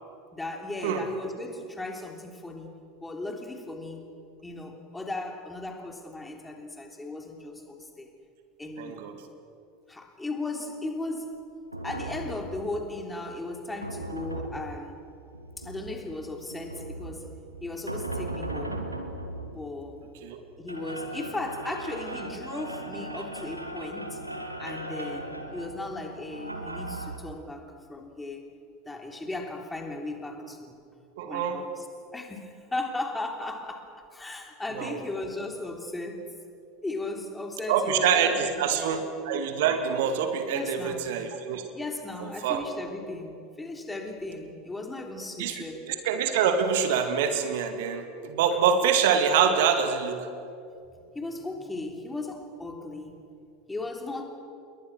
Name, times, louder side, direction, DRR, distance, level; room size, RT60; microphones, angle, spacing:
voice 1, 0.3-4.1 4.4-8.1 8.6-9.0 9.9-11.4 11.8-15.0 15.6-17.3 17.6-18.9 19.5-20.0 20.6-24.2 24.6-28.5 28.8-30.8 31.2-31.9 32.1-36.3 36.8-39.0 40.5-41.3 41.7-45.8 50.9-53.2 53.7-54.2, left 2 dB, 10° left, 3 dB, 3.4 m, -36 dB
voice 2, 8.8-9.1 20.2-20.4 31.2-31.6 34.8-34.9 37.7-41.6 42.2-42.6 45.4-50.2, right 7 dB, 60° right, 7 dB, 2.3 m, -25 dB
sound 1, 11.7-27.2, right 1 dB, 85° right, 1.9 m, -38 dB
28.5 x 22.0 x 6.3 m, 2.5 s
figure-of-eight pair, 75°, 0 cm